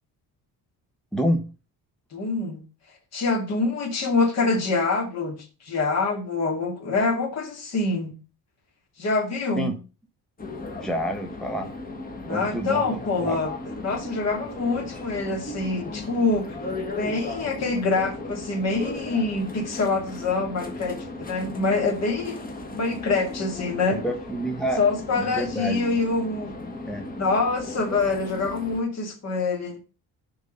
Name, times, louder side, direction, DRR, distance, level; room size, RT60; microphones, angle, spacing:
voice 1, 1.1-1.4 9.6-9.8 10.8-11.7 12.3-13.4 24.0-24.8 25.2-26.0 26.9-27.1, equal, ahead, 0.8 m, -28 dB
voice 2, 2.1-2.6 3.1-8.1 9.0-9.7 12.2-13.5 13.8-16.6 16.9-22.4 22.7-24.0 24.8-26.5 27.2-29.8, left 3 dB, 45° left, 2.4 m, -25 dB
sound 1, 10.4-28.8, left 2 dB, 25° left, 1.5 m, -36 dB
10.0 x 3.7 x 5.3 m
cardioid pair, 150°, 37 cm